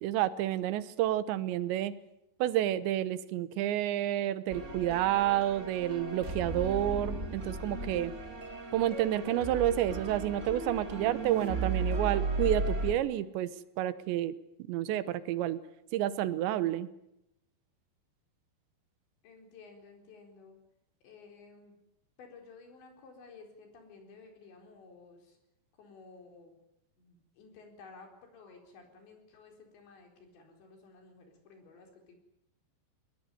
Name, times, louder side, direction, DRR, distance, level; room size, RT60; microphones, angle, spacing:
voice 1, 0.0-1.9 2.4-8.1 8.7-13.5 13.8-14.3 14.7-15.6 15.9-16.9, right 12 dB, 85° right, 15 dB, 3.3 m, -30 dB
sound 1, 4.5-12.9, right 2 dB, 55° right, 0.8 m, -35 dB
voice 2, 19.2-20.6 21.0-21.7 22.2-25.4 25.8-26.5 27.0-32.2, left 4 dB, 80° left, 3 dB, 6.4 m, -54 dB
21.0 x 20.5 x 9.4 m, 0.84 s
omnidirectional pair, 5.1 m